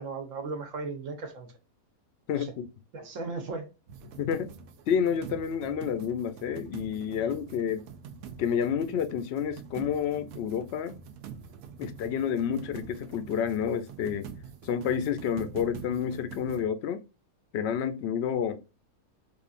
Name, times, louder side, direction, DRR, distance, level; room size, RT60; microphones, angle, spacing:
voice 1, 0.0-1.5 2.3-2.5 2.9-3.7 7.2-7.3, right 3 dB, 65° right, 1.2 m, -36 dB
voice 2, 2.3-2.7 4.2-4.5 4.9-7.8 8.4-11.0 11.8-14.3 14.6-17.0 17.5-18.6, left 8 dB, 65° left, 0.7 m, -29 dB
sound 1, 3.9-16.7, right 7 dB, 85° right, 1.1 m, -45 dB
4.9 x 2.6 x 2.4 m
omnidirectional pair, 1.5 m